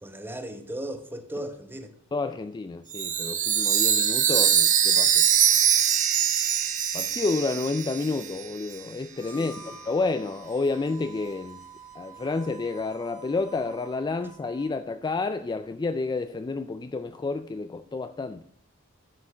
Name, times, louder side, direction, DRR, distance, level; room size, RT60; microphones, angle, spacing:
voice 1, 0.0-1.9 9.3-9.7, right 1 dB, 10° right, 0.9 m, -37 dB
voice 2, 2.1-5.3 6.9-11.6 11.9-18.4, left 3 dB, 20° left, 0.3 m, -30 dB
Chime, 2.9-8.5, right 9 dB, 35° right, 1.0 m, -23 dB
Harmonica, 9.1-14.8, right 4 dB, 80° left, 2.4 m, -48 dB
12.0 x 5.2 x 5.6 m
head